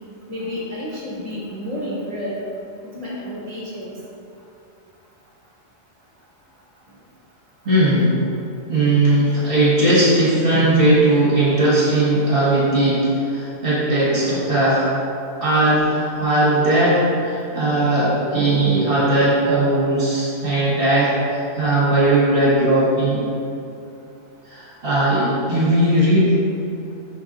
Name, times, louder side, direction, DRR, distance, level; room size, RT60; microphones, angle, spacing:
voice 1, 0.3-2.5 2.9-4.0, left 1 dB, 30° right, -6 dB, 1.4 m, -30 dB
voice 2, 7.6-8.1 8.7-14.9 15.4-23.2 24.5-26.4, right 1 dB, 50° right, -9 dB, 1.6 m, -18 dB
5.8 x 4.7 x 3.8 m, 2.6 s
omnidirectional pair, 1.2 m